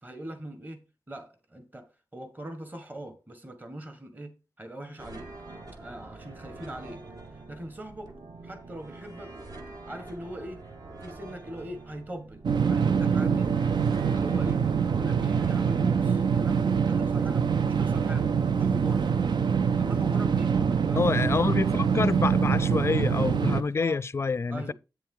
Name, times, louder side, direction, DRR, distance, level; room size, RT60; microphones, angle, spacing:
voice 1, 0.0-5.3 5.8-7.0 7.3-9.4 9.9-10.6 11.0-13.5 14.1-14.6 14.9-19.1 19.8-21.0 23.5-24.0 24.5-24.7, right 1 dB, 25° right, 1.6 m, -41 dB
sound 1, 5.0-17.7, right 2 dB, 55° right, 1.7 m, -46 dB
sound 2, 12.4-23.6, right 6 dB, 75° right, 0.6 m, -24 dB
voice 2, 21.0-24.7, left 4 dB, 35° left, 0.3 m, -27 dB
8.4 x 6.9 x 3.8 m
wide cardioid pair, 135°, 8 cm